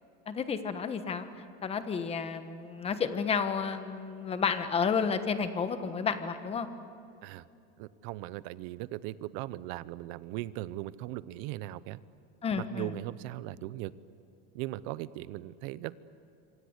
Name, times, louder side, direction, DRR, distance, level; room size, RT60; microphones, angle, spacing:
voice 1, 0.3-1.3 1.6-6.7 12.4-12.9, left 6 dB, 20° left, 9 dB, 1.3 m, -31 dB
voice 2, 7.8-12.0 12.7-13.9 14.5-15.9, right 16 dB, 55° right, 17 dB, 0.9 m, -38 dB
27.0 x 25.0 x 8.1 m, 2.7 s
cardioid pair, 165°, 32 cm